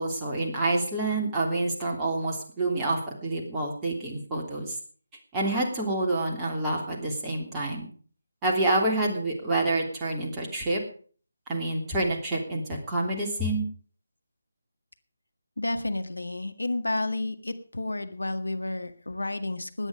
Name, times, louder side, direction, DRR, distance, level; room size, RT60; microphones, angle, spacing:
voice 1, 0.0-4.7 5.3-7.9 8.4-10.8 11.5-13.7, right 2 dB, 15° right, -2 dB, 3.2 m, -28 dB
voice 2, 15.6-19.9, left 2 dB, 75° left, 9 dB, 1.8 m, -31 dB
17.5 x 10.0 x 5.1 m, 0.44 s
figure-of-eight pair, 155°, 0 cm